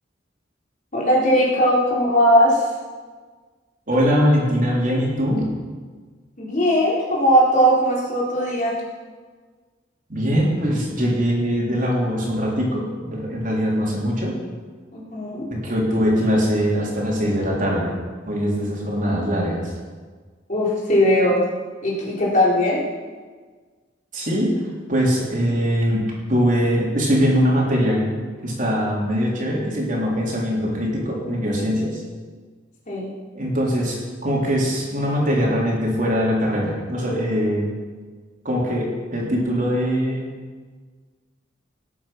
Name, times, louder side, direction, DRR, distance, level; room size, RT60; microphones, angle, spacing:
voice 1, 0.9-2.7 6.4-8.8 14.9-15.5 20.5-21.4 21.8-22.8 32.9-33.1, equal, 40° left, -5 dB, 3.8 m, -19 dB
voice 2, 3.9-5.5 10.1-14.3 15.5-17.9 18.2-19.7 24.1-24.6 24.9-28.1 28.4-32.0 33.3-37.6 38.5-40.3, equal, 45° right, -3 dB, 3.6 m, -22 dB
19.0 x 8.5 x 5.9 m, 1.5 s
head